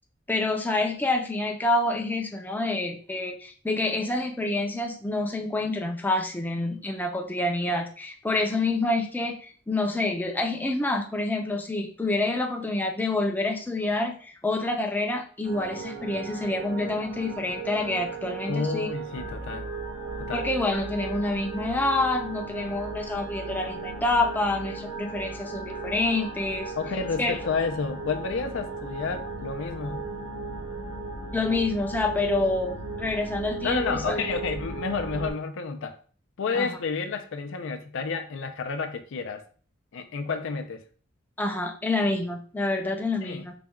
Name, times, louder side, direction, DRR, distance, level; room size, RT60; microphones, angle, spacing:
voice 1, 0.3-18.9 20.3-26.7 27.2-27.4 31.3-34.2 36.5-36.8 41.4-43.5, left 2 dB, 10° left, 0.5 m, -27 dB
sound 1, 15.4-35.3, right 3 dB, 80° right, 1.2 m, -36 dB
voice 2, 18.5-19.7 20.2-20.5 26.8-30.0 33.6-36.0 36.4-39.4 39.9-40.8 43.2-43.5, left 4 dB, 65° left, 0.5 m, -30 dB
4.0 x 2.3 x 3.5 m
head